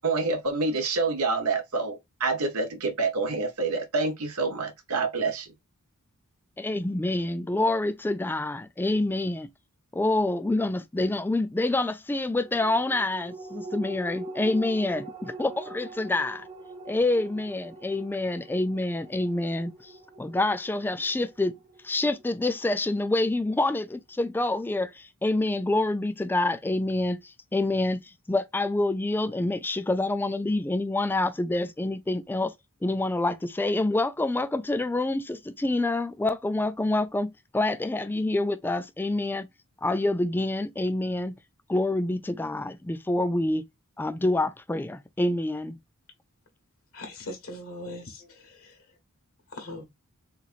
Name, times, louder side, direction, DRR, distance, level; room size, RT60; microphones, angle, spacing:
voice 1, 0.0-5.5, right 3 dB, 70° right, 0.8 m, -27 dB
voice 2, 6.6-9.5 9.9-16.5 16.9-19.9 20.2-21.6 21.8-28.0 28.3-32.5 32.8-39.5 39.8-41.3 41.7-43.6 44.0-45.8, left 2 dB, 10° left, 0.3 m, -27 dB
sound 1, 12.3-23.2 23.5-23.6, right 2 dB, 30° right, 0.9 m, -43 dB
voice 3, 46.9-48.7 49.5-49.9, left 1 dB, 65° left, 1.3 m, -40 dB
3.8 x 3.1 x 2.4 m
head